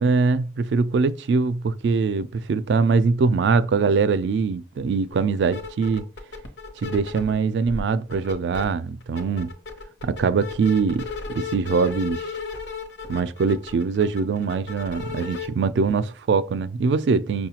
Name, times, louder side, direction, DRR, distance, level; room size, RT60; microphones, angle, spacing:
voice 1, 0.0-6.1 6.8-9.5 10.0-12.3 13.1-17.5, right 4 dB, 80° right, 0.3 m, -22 dB
sound 1, 5.1-5.2 5.5-7.3 7.7-8.6 9.0-15.5, left 5 dB, 80° left, 0.8 m, -34 dB
5.5 x 2.2 x 2.8 m
head